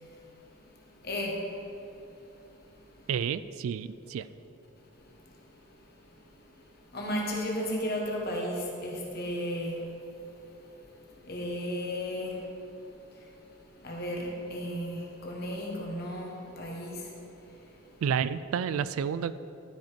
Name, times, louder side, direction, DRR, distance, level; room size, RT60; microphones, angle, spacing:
voice 1, 1.0-1.3 6.9-9.7 11.3-12.4 13.8-17.0, equal, 45° left, -2 dB, 1.6 m, -34 dB
voice 2, 3.1-4.3 18.0-19.3, right 7 dB, 75° right, 16 dB, 0.3 m, -30 dB
12.0 x 5.2 x 5.1 m, 2.8 s
head